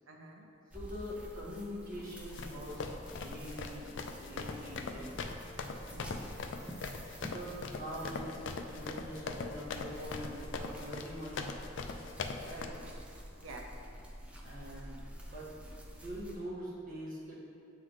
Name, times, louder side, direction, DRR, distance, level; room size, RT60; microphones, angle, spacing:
voice 1, 0.1-0.5 5.7-7.0 9.0-9.1 13.4-13.7, right 2 dB, 85° right, 2 dB, 0.7 m, -52 dB
sound 1, 0.7-16.4, equal, 5° right, 0.5 m, -48 dB
voice 2, 0.7-5.3 7.1-11.5 12.4-12.8 14.4-15.5 15.9-17.4, equal, 45° right, -7 dB, 1.5 m, -44 dB
sound 2, 2.1-12.7, left 4 dB, 65° left, 0.4 m, -41 dB
8.0 x 3.9 x 3.1 m, 2.5 s
head